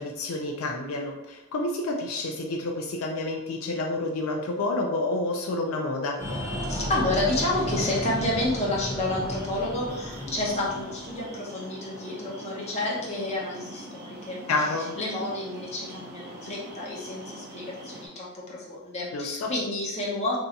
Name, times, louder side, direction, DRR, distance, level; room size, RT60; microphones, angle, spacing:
voice 1, 0.0-6.2 14.5-15.0 19.1-19.5, left 2 dB, 80° left, 2 dB, 0.4 m, -29 dB
Breathing, 6.2-11.4, equal, 10° right, 0.8 m, -33 dB
voice 2, 6.7-14.4 14.7-20.4, left 2 dB, 30° left, -4 dB, 0.8 m, -30 dB
sound 1, 9.0-18.1, equal, 45° right, 0.8 m, -43 dB
2.7 x 2.3 x 3.9 m, 0.94 s
head